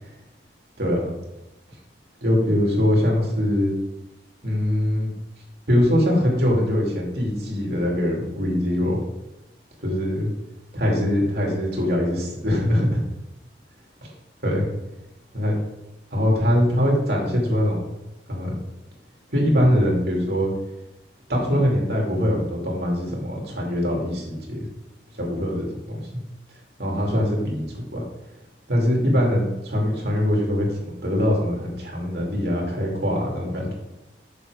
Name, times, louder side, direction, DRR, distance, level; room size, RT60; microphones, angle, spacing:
voice 1, 0.8-1.1 2.2-3.7 4.4-5.1 5.7-9.0 9.8-10.3 10.7-13.0 14.0-14.1 14.4-14.7 15.3-15.6 16.1-17.8 18.3-18.5 19.3-20.5 21.3-24.6 25.2-25.7 26.8-28.0 28.7-33.7, equal, 65° right, -2 dB, 2.9 m, -22 dB
7.3 x 6.8 x 5.1 m, 0.94 s
head